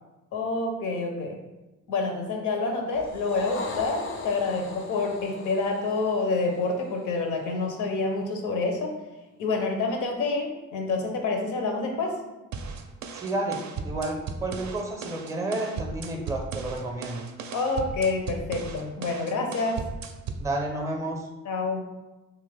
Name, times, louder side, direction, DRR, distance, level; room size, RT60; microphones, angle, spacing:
voice 1, 0.3-1.4 1.9-8.9 9.4-12.2 17.5-19.8 21.5-21.8, left 3 dB, 80° left, 3 dB, 0.7 m, -28 dB
sound 1, 2.9-7.5, left 3 dB, 40° left, 0.4 m, -39 dB
sound 2, 12.5-20.5, right 4 dB, 70° right, 0.4 m, -36 dB
voice 2, 13.1-17.3 20.4-21.3, right 2 dB, 10° right, 2 dB, 0.5 m, -31 dB
2.9 x 2.5 x 3.3 m, 1.1 s
cardioid pair, 90°, 30 cm